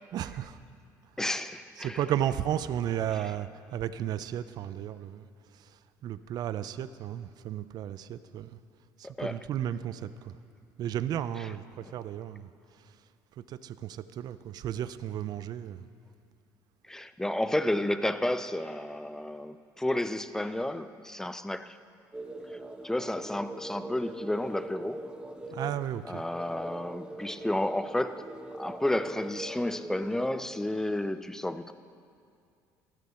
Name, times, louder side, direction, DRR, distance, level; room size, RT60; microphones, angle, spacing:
voice 1, 0.1-0.6 1.8-5.3 5.5-8.6 9.0-10.4 10.8-12.5 13.5-15.8 25.5-26.2, right 10 dB, 55° right, 14 dB, 0.5 m, -34 dB
voice 2, 1.2-2.0 9.0-9.4 16.9-21.8 22.5-22.6 22.8-25.1 26.1-28.3 28.6-31.7, left 1 dB, 5° left, 12 dB, 0.5 m, -31 dB
sound 1, 22.1-31.1, right 1 dB, 10° right, 1.0 m, -42 dB
14.0 x 13.0 x 4.4 m, 2.4 s
supercardioid pair, 95°, 8 cm